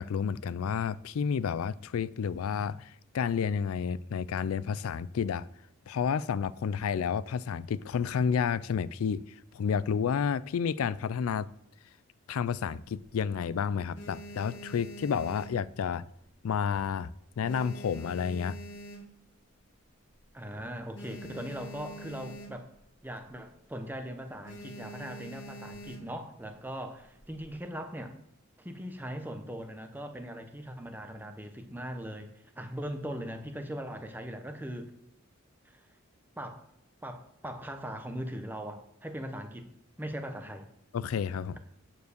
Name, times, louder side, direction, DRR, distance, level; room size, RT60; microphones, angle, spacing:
voice 1, 0.0-5.5 5.9-11.5 12.3-16.1 16.4-17.1 17.4-18.6 40.9-41.6, left 7 dB, 85° left, 0.4 m, -30 dB
sound 1, 12.7-13.4 13.8-16.3 16.5-16.9 17.2-19.5 19.9-20.0 20.2-20.3 20.6-22.8 23.2-23.4 23.7-24.0 24.4-26.3 27.0-27.6, equal, 60° left, 1.5 m, -46 dB
voice 2, 20.3-22.7 23.0-28.1 28.6-34.9 35.6-35.8 36.4-36.6 37.0-39.7 40.0-40.7, equal, 10° right, 0.9 m, -40 dB
9.2 x 4.6 x 6.7 m
head